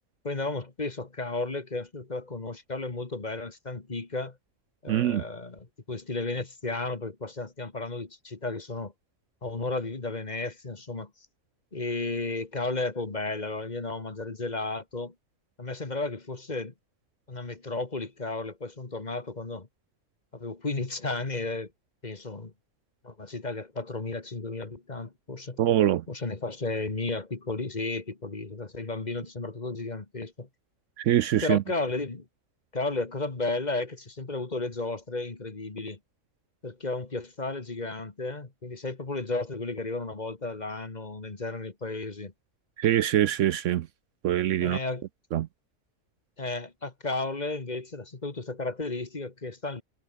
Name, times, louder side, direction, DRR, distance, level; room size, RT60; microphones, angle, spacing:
voice 1, 0.2-4.4 4.8-8.9 9.4-11.1 11.7-15.1 15.6-16.7 17.3-19.7 20.3-21.7 22.0-22.5 23.0-25.6 26.1-30.5 31.4-32.3 32.7-36.0 36.6-42.3 44.6-45.0 46.4-49.8, left 3 dB, 30° left, 1.9 m, -33 dB
voice 2, 4.9-5.2 25.6-26.0 31.0-31.6 42.8-43.9 44.2-44.8 45.3-45.5, right 12 dB, 70° right, 0.9 m, -24 dB
omnidirectional pair, 1.4 m